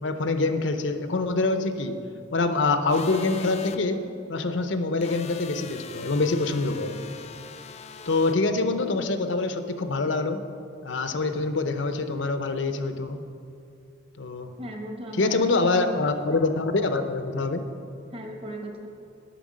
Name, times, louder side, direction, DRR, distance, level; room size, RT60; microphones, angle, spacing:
voice 1, 0.0-2.0 2.3-7.0 8.1-10.4 10.8-13.2 14.2-14.5 15.2-17.6, left 3 dB, 70° left, 8 dB, 0.7 m, -25 dB
sound 1, 2.9-3.8 5.0-8.4, left 6 dB, 35° left, 0.4 m, -42 dB
voice 2, 14.6-16.0 16.3-16.4 18.1-18.9, equal, 30° right, 3 dB, 1.1 m, -37 dB
10.0 x 5.9 x 7.4 m, 2.5 s
head